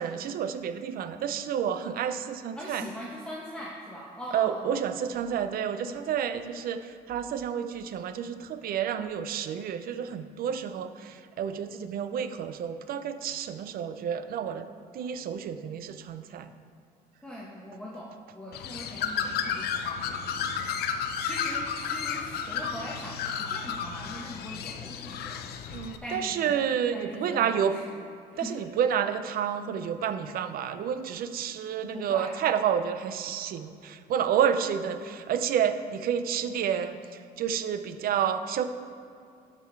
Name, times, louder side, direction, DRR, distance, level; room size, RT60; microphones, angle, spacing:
voice 1, 0.0-2.9 4.3-14.7 14.9-16.5 25.7-27.8 28.4-38.6, right 8 dB, 60° right, 10 dB, 0.6 m, -30 dB
voice 2, 2.6-4.7 17.2-20.7 21.2-25.4 26.0-26.5 26.9-27.9 28.3-28.5 31.9-32.3, equal, 5° left, -5 dB, 1.2 m, -41 dB
Bird, 18.5-26.0, left 7 dB, 70° left, 0.6 m, -32 dB
12.0 x 5.3 x 4.6 m, 2.5 s
cardioid pair, 110°, 17 cm